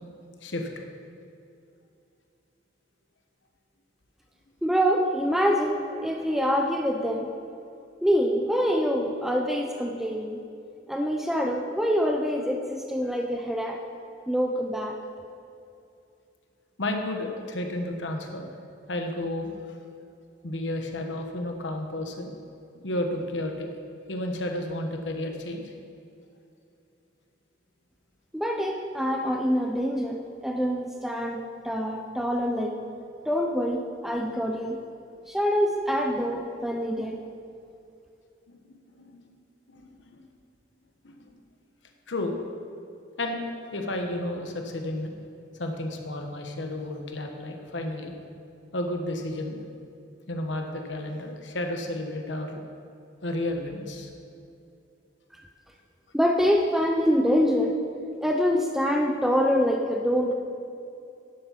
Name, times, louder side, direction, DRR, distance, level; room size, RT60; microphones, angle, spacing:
voice 1, 4.6-7.3 8.0-10.4 10.9-13.8 14.3-15.0 28.3-32.8 33.3-34.8 35.3-37.2 56.1-57.8 58.2-60.3, equal, ahead, 2 dB, 0.5 m, -25 dB
voice 2, 16.8-18.5 18.9-19.8 20.4-22.3 22.7-23.7 24.1-25.7 38.6-39.2 39.7-40.2 41.0-41.3 42.1-42.3 43.2-43.4 43.7-45.1 45.6-48.1 48.7-49.6 50.3-52.6 53.2-54.1, left 1 dB, 75° left, 3 dB, 1.1 m, -32 dB
10.5 x 7.4 x 5.6 m, 2.6 s
head